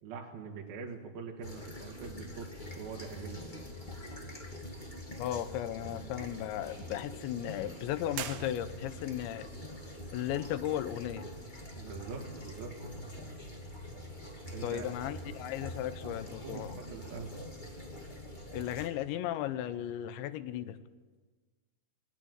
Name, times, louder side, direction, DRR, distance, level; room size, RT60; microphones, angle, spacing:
voice 1, 0.0-2.5 2.7-3.5 11.8-12.8 13.2-13.3 14.5-14.8 16.4-17.4, right 5 dB, 60° right, -1 dB, 3.2 m, -43 dB
sound 1, 1.4-18.9, left 1 dB, 30° left, 0.9 m, -45 dB
voice 2, 5.2-9.5 10.1-11.3 14.6-16.8 18.5-20.8, left 12 dB, 80° left, 13 dB, 3.0 m, -36 dB
sound 2, 8.1-9.2, right 10 dB, 75° right, 3.6 m, -42 dB
19.0 x 18.5 x 9.5 m, 1.4 s
omnidirectional pair, 5.5 m